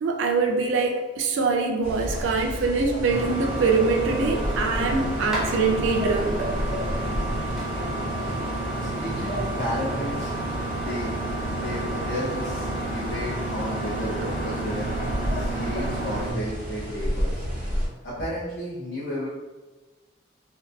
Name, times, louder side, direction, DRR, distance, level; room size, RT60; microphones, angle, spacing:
voice 1, 0.0-6.4, right 4 dB, 75° right, 4 dB, 0.3 m, -24 dB
sound 1, 1.8-17.9, equal, 40° right, 0.8 m, -32 dB
sound 2, 3.1-16.3, right 2 dB, 5° right, 0.4 m, -30 dB
voice 2, 8.8-10.4 10.7-11.1 11.5-14.9 15.3-17.4 18.0-19.3, left 1 dB, 60° left, -10 dB, 0.7 m, -33 dB
2.6 x 2.2 x 2.2 m, 1.2 s
head